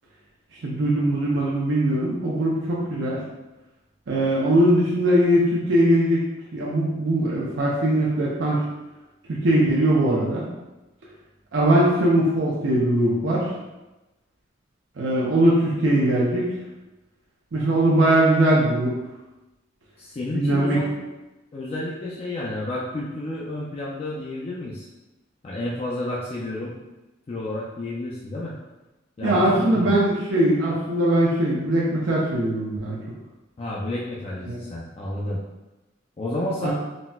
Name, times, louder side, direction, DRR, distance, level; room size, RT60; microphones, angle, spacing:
voice 1, 0.6-3.2 4.1-6.2 6.5-8.6 9.3-10.4 11.5-13.5 15.0-16.6 17.5-18.9 20.3-20.8 29.2-33.0 34.5-34.6 36.6-36.7, right 1 dB, 70° right, -5 dB, 0.5 m, -20 dB
voice 2, 20.0-21.0 21.5-24.9 25.4-26.7 27.3-28.6 29.2-29.9 33.6-35.4 36.2-36.7, left 1 dB, 30° left, -5 dB, 0.3 m, -31 dB
4.0 x 2.1 x 2.2 m, 1.1 s
head